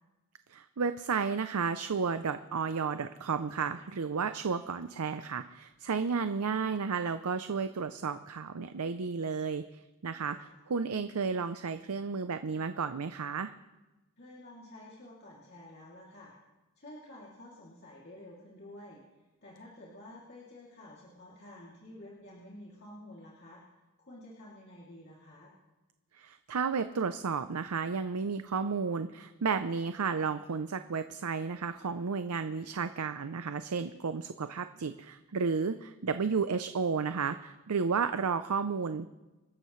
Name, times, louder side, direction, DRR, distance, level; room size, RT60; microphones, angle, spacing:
voice 1, 0.5-9.6 10.0-13.5 26.1-39.1, right 5 dB, 85° right, 10 dB, 0.6 m, -32 dB
voice 2, 14.2-16.3 16.8-23.6 24.0-25.5, left 1 dB, 45° left, -5 dB, 2.8 m, -50 dB
27.0 x 13.5 x 3.2 m, 1.1 s
head